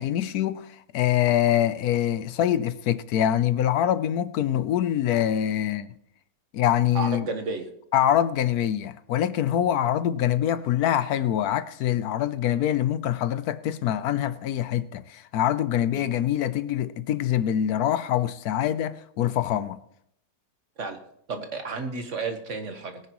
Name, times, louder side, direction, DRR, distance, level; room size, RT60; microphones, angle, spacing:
voice 1, 0.0-5.9 6.5-7.3 7.9-19.8, left 11 dB, 75° left, 1.1 m, -24 dB
voice 2, 6.9-7.7 15.9-16.1 20.8-21.0 21.3-23.0, right 3 dB, 50° right, 1.5 m, -32 dB
21.0 x 9.8 x 3.0 m
omnidirectional pair, 1.6 m